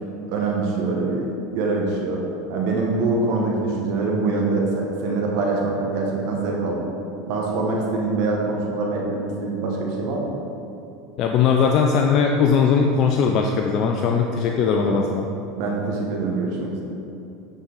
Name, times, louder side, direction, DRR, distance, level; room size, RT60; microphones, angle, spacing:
voice 1, 0.3-1.3 1.5-2.2 2.5-6.9 7.3-10.4 14.7-15.0 15.6-16.8, right 3 dB, 65° right, -1 dB, 1.1 m, -24 dB
voice 2, 11.2-15.2, left 6 dB, 50° left, 2 dB, 0.5 m, -19 dB
9.7 x 4.0 x 3.9 m, 2.8 s
hypercardioid pair, 100°, 0 cm